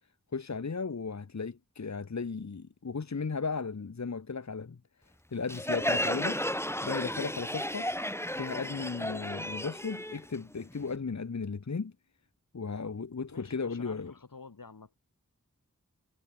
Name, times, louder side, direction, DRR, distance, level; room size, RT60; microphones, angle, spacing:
voice 1, 0.3-4.8 5.3-6.4 6.8-7.9 8.3-11.9 12.5-14.1, left 4 dB, 55° left, 1.2 m, -35 dB
Crowd, 5.5-10.9, left 1 dB, 10° left, 2.4 m, -33 dB
voice 2, 13.3-15.0, left 4 dB, 85° left, 3.7 m, -49 dB
wide cardioid pair, 55°, 33 cm